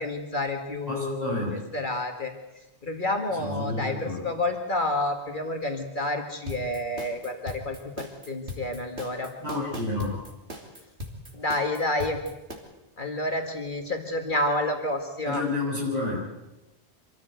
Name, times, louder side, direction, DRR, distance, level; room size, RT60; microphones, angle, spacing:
voice 1, 0.0-1.4 1.7-2.3 2.8-9.3 11.3-12.2 13.0-15.4, left 2 dB, 50° left, 4 dB, 2.0 m, -29 dB
voice 2, 0.9-1.6 3.4-4.3 9.4-10.2 15.3-16.2, left 2 dB, 35° right, -3 dB, 7.3 m, -30 dB
sound 1, 6.5-12.6, left 1 dB, 70° right, 3.3 m, -38 dB
25.0 x 14.0 x 8.0 m, 1.0 s
omnidirectional pair, 1.1 m